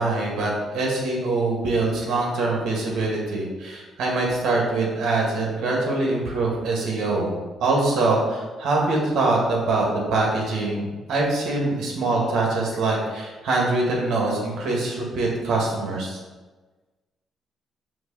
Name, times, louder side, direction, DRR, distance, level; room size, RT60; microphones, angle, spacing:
voice 1, 0.0-7.3 7.6-16.2, right 2 dB, 75° right, -2 dB, 1.9 m, -24 dB
5.9 x 3.1 x 5.5 m, 1.3 s
cardioid pair, 90°, 0 cm